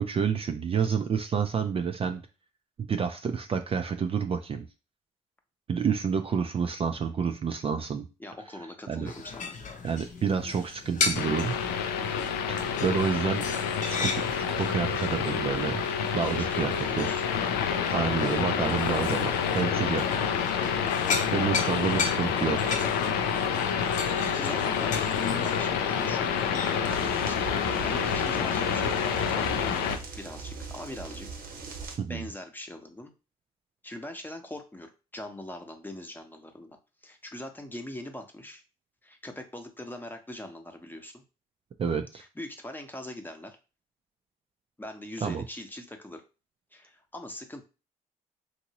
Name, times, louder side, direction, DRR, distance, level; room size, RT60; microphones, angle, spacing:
voice 1, 0.0-2.2 2.9-4.7 5.7-8.1 8.9-9.1 9.8-11.5 12.5-13.4 13.8-15.8 16.1-17.1 17.9-20.2 21.0-22.8 26.9-27.0 32.0-32.3 41.8-42.1 45.2-45.4, right 6 dB, 35° right, 7 dB, 0.4 m, -29 dB
voice 2, 8.2-9.5 16.2-17.2 24.1-25.0 25.4-31.3 32.1-33.1 33.8-36.8 37.0-38.6 39.0-41.2 42.1-43.6 44.8-46.2 46.7-47.6, left 1 dB, 10° left, 5 dB, 0.8 m, -42 dB
sound 1, 9.1-27.1, left 4 dB, 50° left, 0.7 m, -36 dB
sound 2, 11.1-30.0, left 7 dB, 85° left, 0.4 m, -28 dB
sound 3, 26.9-32.0, right 4 dB, 65° right, 0.9 m, -40 dB
2.9 x 2.6 x 2.8 m, 0.31 s
supercardioid pair, 60°, 16 cm